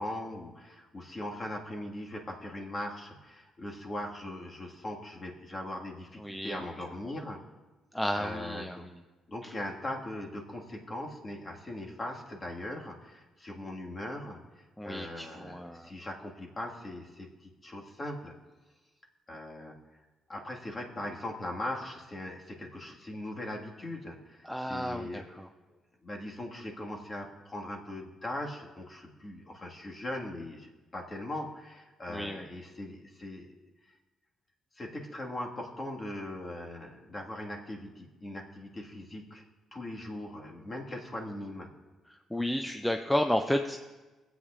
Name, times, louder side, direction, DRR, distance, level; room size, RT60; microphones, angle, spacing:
voice 1, 0.0-7.4 8.1-8.9 9.3-18.3 19.3-20.0 20.3-25.2 26.0-33.5 34.7-39.4 39.7-41.7, left 1 dB, 30° left, 0 dB, 1.7 m, -40 dB
voice 2, 6.2-6.7 7.9-9.0 9.4-9.5 14.8-15.9 24.4-25.5 32.1-32.4 42.3-43.8, left 1 dB, 5° left, 5 dB, 0.5 m, -32 dB
21.5 x 8.2 x 2.5 m, 1.2 s
cardioid pair, 90°, 0 cm